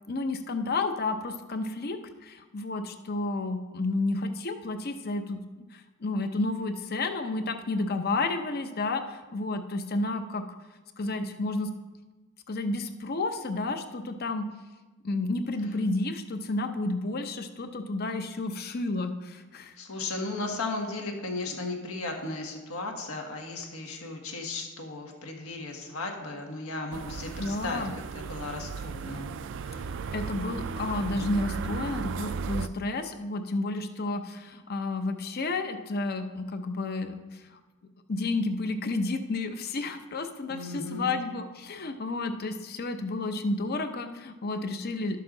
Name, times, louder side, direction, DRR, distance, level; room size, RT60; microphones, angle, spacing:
voice 1, 0.1-5.4 5.7-10.4 11.0-11.7 12.5-14.5 15.0-19.7 27.4-27.9 30.1-37.6 38.1-45.2, left 2 dB, 45° left, 8 dB, 0.7 m, -31 dB
voice 2, 19.8-27.8 28.1-29.3 29.7-29.8 40.5-41.2, left 2 dB, 85° left, 2 dB, 1.5 m, -35 dB
sound 1, 26.9-32.7, right 5 dB, 60° right, 0.4 m, -35 dB
12.0 x 6.7 x 3.8 m, 1.2 s
head